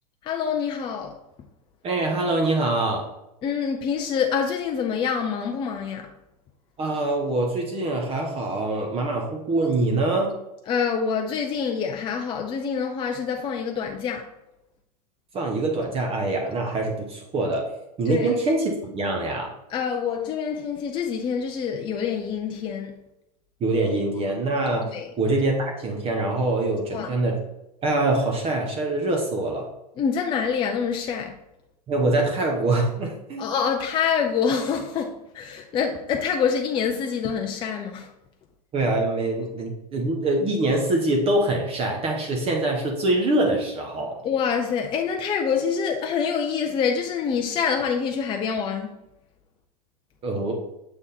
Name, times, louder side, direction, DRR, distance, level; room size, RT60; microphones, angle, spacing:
voice 1, 0.2-1.2 3.4-6.1 10.7-14.3 18.1-18.3 19.7-22.9 24.9-25.1 26.9-27.1 30.0-31.4 33.4-38.1 44.2-49.0, left 6 dB, 25° left, 0.5 m, -26 dB
voice 2, 1.8-3.1 6.8-10.3 15.3-17.7 18.0-19.5 23.6-27.4 27.8-29.7 31.9-33.5 38.7-44.2 50.2-50.5, right 2 dB, 30° right, 1.0 m, -24 dB
6.8 x 3.5 x 4.2 m
hypercardioid pair, 115°, 21 cm